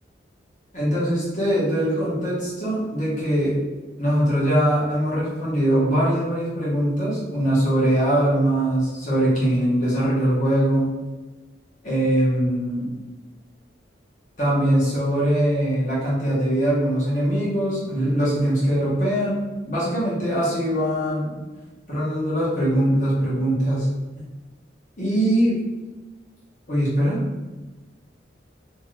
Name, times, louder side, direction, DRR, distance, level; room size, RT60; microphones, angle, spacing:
voice 1, 0.7-3.6 4.0-10.9 11.8-12.9 14.4-21.3 21.9-23.9 24.2-24.3 25.0-25.6 26.7-27.2, right 1 dB, 40° left, -8 dB, 1.2 m, -22 dB
3.0 x 2.5 x 3.2 m, 1.2 s
head